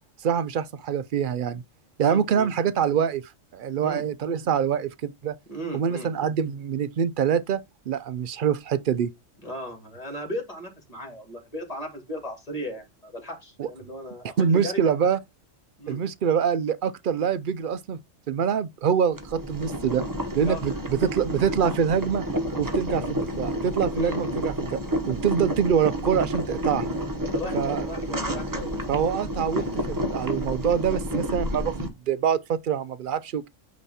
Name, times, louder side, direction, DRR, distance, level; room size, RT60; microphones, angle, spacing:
voice 1, 0.2-1.6 2.0-5.4 5.7-9.1 13.6-13.7 14.2-15.2 15.9-18.0 18.3-20.0 20.3-22.2 22.6-24.8 25.1-26.9 27.5-27.9 28.9-33.5, right 7 dB, 60° right, 0.5 m, -25 dB
voice 2, 2.0-2.5 3.8-4.0 5.5-6.1 9.4-15.0 15.8-16.0 20.4-20.6 23.9-24.2 27.3-28.7, equal, 30° left, 2.5 m, -36 dB
Boiling, 19.1-31.9, equal, 15° right, 1.1 m, -30 dB
9.0 x 3.2 x 4.1 m
omnidirectional pair, 1.3 m